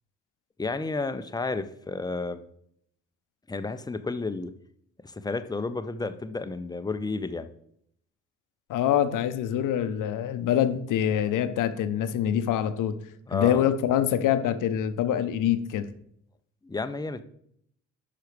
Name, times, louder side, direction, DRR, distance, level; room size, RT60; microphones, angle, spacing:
voice 1, 0.6-2.4 3.5-4.5 5.0-7.5 13.3-13.7 16.6-17.2, left 3 dB, 10° left, 10 dB, 0.7 m, -31 dB
voice 2, 8.7-12.9 13.3-15.9, left 10 dB, 60° left, 10 dB, 0.8 m, -25 dB
10.0 x 5.8 x 3.3 m, 0.70 s
figure-of-eight pair, 45°, 36 cm